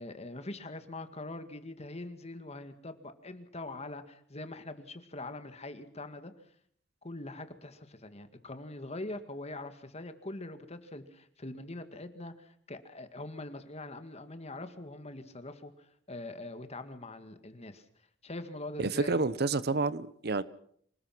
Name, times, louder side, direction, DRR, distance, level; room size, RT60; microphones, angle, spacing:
voice 1, 0.0-6.3 7.0-17.8 18.2-19.2, left 2 dB, 35° left, 2.1 m, -43 dB
voice 2, 18.8-20.4, right 3 dB, 60° right, 0.9 m, -29 dB
26.5 x 19.5 x 6.1 m
head